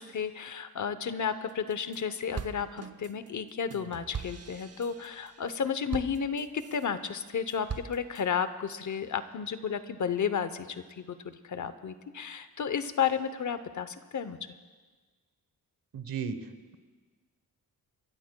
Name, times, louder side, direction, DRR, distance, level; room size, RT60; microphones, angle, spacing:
voice 1, 0.0-14.4, left 7 dB, 55° left, 12 dB, 0.8 m, -32 dB
sound 1, 1.5-2.0 2.4-6.9 7.3-8.2, right 6 dB, 45° right, 0.8 m, -41 dB
voice 2, 15.9-16.8, right 6 dB, 70° right, 10 dB, 1.1 m, -36 dB
29.0 x 14.0 x 2.3 m, 1.4 s
wide cardioid pair, 95°, 36 cm